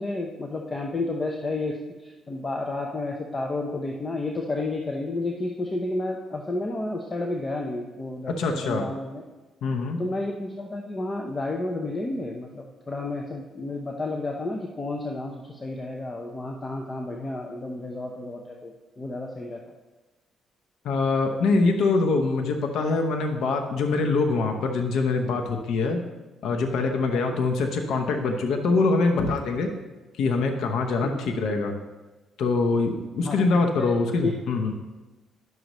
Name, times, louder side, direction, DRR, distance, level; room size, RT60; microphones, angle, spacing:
voice 1, 0.0-9.2 10.0-19.6 27.1-27.4 31.0-31.2 33.2-33.4 33.8-34.3, left 2 dB, 30° left, 1 dB, 0.8 m, -31 dB
voice 2, 8.3-8.9 9.6-10.0 20.8-26.0 26.4-29.7 30.2-31.7 32.4-34.7, left 3 dB, 75° left, 3 dB, 0.9 m, -24 dB
10.5 x 6.5 x 3.1 m, 1.2 s
cardioid pair, 90°, 0 cm